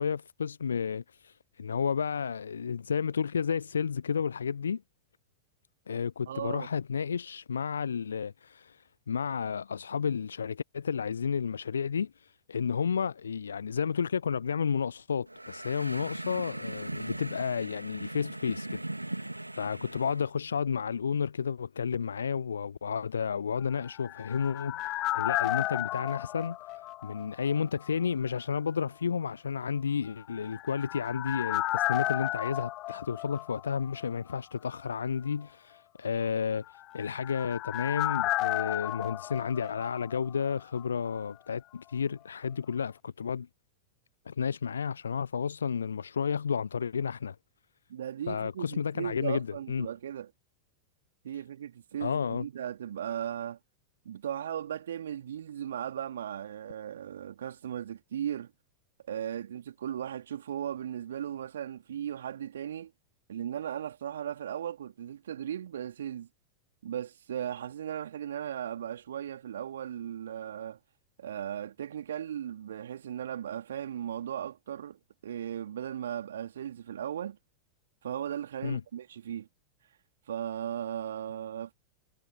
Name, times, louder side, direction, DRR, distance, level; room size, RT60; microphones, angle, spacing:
voice 1, 0.0-4.8 5.9-18.8 19.2-19.3 19.6-43.5 44.3-47.4 48.3-49.9 52.0-52.5 78.6-78.8, left 6 dB, 70° left, 0.7 m, -32 dB
voice 2, 6.3-6.7 47.9-50.3 51.2-53.6 54.0-58.5 59.1-62.9 63.3-66.3 66.8-70.8 71.2-77.4 78.0-79.5 80.3-81.7, right 10 dB, 65° right, 3.1 m, -37 dB
sound 1, 15.3-20.3, right 1 dB, 85° right, 2.9 m, -39 dB
sound 2, 23.7-27.6 27.8-27.9 30.3-34.1 34.3-34.4 36.7-40.5 40.8-40.9, left 17 dB, 35° left, 0.7 m, -33 dB
figure-of-eight pair, 90°, 0 cm